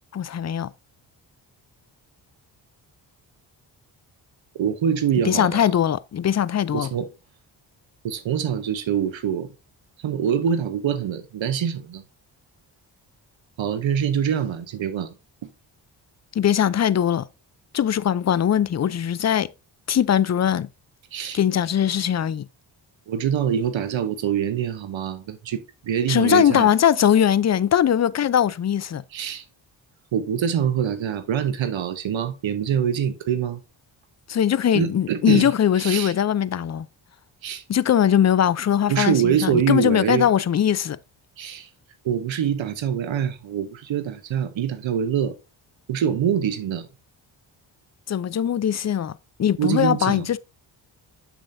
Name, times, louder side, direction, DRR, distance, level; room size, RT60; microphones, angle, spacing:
voice 1, 0.1-0.7 5.3-6.9 16.4-17.3 17.7-19.5 19.9-20.7 21.3-22.5 26.1-29.0 34.3-36.9 37.7-41.0 48.1-49.1 49.4-50.4, left 9 dB, 35° left, 0.5 m, -20 dB
voice 2, 4.5-5.7 6.7-7.1 8.0-9.5 10.0-12.0 13.6-15.1 15.4-15.5 21.1-21.4 23.1-26.7 29.1-29.4 30.1-33.6 34.7-36.1 37.4-37.6 38.9-40.3 41.4-41.7 42.0-45.3 45.9-46.9 49.6-50.4, right 8 dB, 70° right, 0.9 m, -24 dB
7.2 x 7.0 x 2.6 m
cardioid pair, 65°, 48 cm